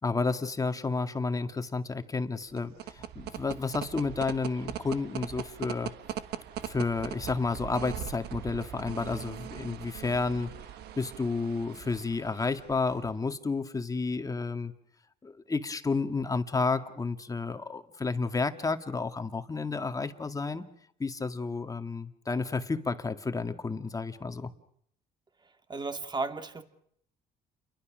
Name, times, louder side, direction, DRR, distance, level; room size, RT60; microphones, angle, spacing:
voice 1, 0.0-5.9 6.6-10.5 11.0-14.7 15.2-20.7 21.0-24.5, left 4 dB, 20° left, 8 dB, 1.9 m, -31 dB
sound 1, 2.4-13.2, right 11 dB, 75° right, 1.4 m, -41 dB
voice 2, 25.7-26.6, right 3 dB, 25° right, 7 dB, 2.4 m, -34 dB
30.0 x 23.0 x 6.3 m, 0.68 s
cardioid pair, 110°, 17 cm